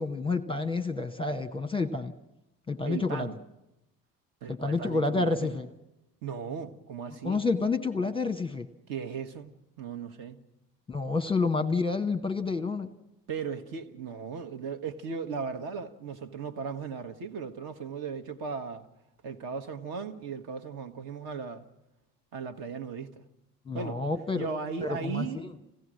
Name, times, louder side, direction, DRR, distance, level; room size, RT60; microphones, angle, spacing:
voice 1, 0.0-2.1 2.7-3.4 4.5-5.7 7.2-8.7 10.9-12.9 23.7-24.5 24.8-25.5, left 3 dB, 10° left, 1.0 m, -29 dB
voice 2, 2.8-3.4 4.4-5.5 6.2-7.5 8.9-10.4 13.3-18.9 19.2-21.6 22.3-23.2 23.7-24.0 24.3-25.5, right 5 dB, 50° right, 1.5 m, -37 dB
27.0 x 16.5 x 6.4 m
figure-of-eight pair, 55°, 48 cm